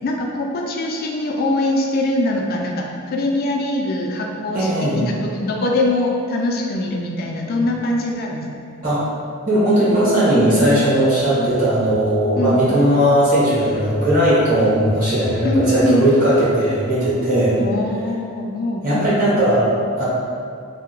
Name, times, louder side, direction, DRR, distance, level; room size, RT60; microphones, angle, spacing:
voice 1, 0.0-8.5 11.4-11.5 12.3-12.7 15.4-16.1 17.6-19.1, left 1 dB, 40° left, 0 dB, 0.3 m, -22 dB
voice 2, 4.5-5.0 8.8-9.0 9.4-17.6 18.8-19.7 20.0-20.1, right 1 dB, 35° right, -10 dB, 1.0 m, -17 dB
2.7 x 2.1 x 3.8 m, 2.3 s
head